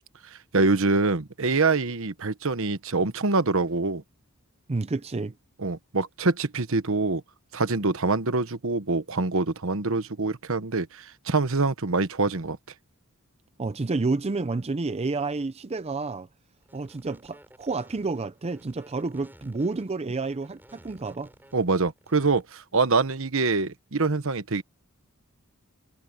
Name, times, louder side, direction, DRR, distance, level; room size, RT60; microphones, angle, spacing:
voice 1, 0.5-4.0 5.6-7.2 7.5-12.6 21.5-24.6, right 3 dB, 65° right, 1.2 m, -25 dB
voice 2, 4.7-5.4 13.6-16.3 16.7-21.3, right 3 dB, 30° right, 0.5 m, -30 dB
sound 1, 16.6-22.4, right 1 dB, 10° right, 7.4 m, -54 dB
head